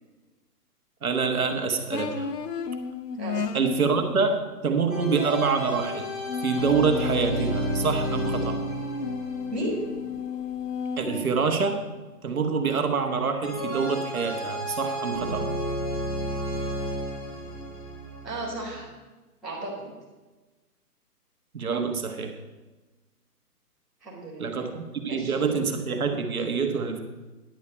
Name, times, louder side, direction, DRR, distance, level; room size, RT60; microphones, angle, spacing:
voice 1, 1.0-2.3 3.5-6.1 6.4-8.6 11.0-11.8 12.2-15.5 21.5-22.4 24.4-27.0, right 5 dB, 60° right, 5 dB, 1.5 m, -26 dB
sound 1, 1.9-4.2 6.2-11.3, left 4 dB, 80° left, 1.0 m, -33 dB
sound 2, 4.9-11.0 13.4-18.8, equal, 25° left, 1.1 m, -32 dB
voice 2, 9.5-9.8 18.2-18.9 19.4-19.9 24.0-24.7 25.1-25.3, right 1 dB, ahead, -17 dB, 1.4 m, -34 dB
10.5 x 5.3 x 8.4 m, 1.2 s
hypercardioid pair, 170°, 47 cm